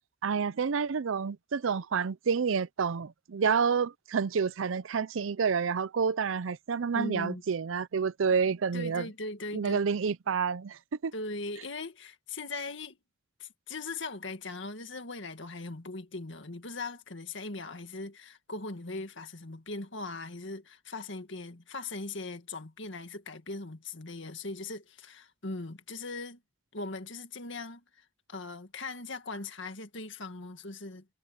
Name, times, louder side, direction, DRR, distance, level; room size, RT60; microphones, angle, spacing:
voice 1, 0.2-9.1 9.5-11.1, right 6 dB, 80° right, 0.5 m, -29 dB
voice 2, 6.9-7.4 8.7-9.8 11.1-13.0 13.4-26.4 26.7-31.1, left 3 dB, 70° left, 2.0 m, -40 dB
head